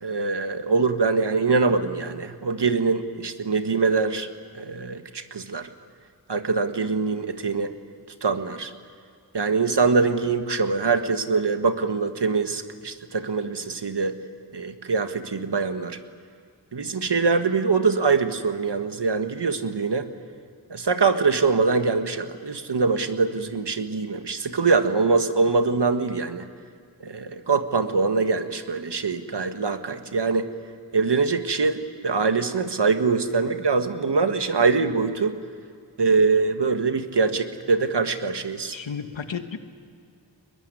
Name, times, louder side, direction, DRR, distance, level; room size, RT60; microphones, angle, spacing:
voice 1, 0.0-5.7 6.3-7.7 8.2-8.7 9.3-14.1 14.5-16.0 16.7-20.1 20.7-26.5 27.0-30.5 30.9-35.4 36.0-38.7, right 4 dB, 65° right, 8 dB, 1.7 m, -23 dB
voice 2, 38.7-39.6, left 6 dB, 90° left, 8 dB, 1.5 m, -32 dB
23.0 x 21.0 x 9.8 m, 2.3 s
cardioid pair, 45°, 44 cm